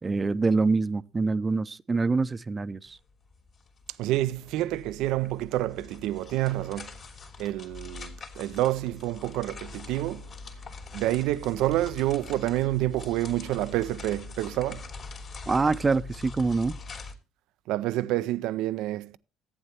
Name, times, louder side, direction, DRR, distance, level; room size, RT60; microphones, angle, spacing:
voice 1, 0.0-3.0 15.5-16.8, right 4 dB, 25° right, 0.6 m, -25 dB
sound 1, 2.9-3.0 3.2-17.1, left 4 dB, 50° left, 2.9 m, -43 dB
voice 2, 4.0-6.9 7.4-10.3 10.9-14.8 17.7-19.2, right 15 dB, 70° right, 0.4 m, -28 dB
15.0 x 8.9 x 2.9 m
hypercardioid pair, 60°, 0 cm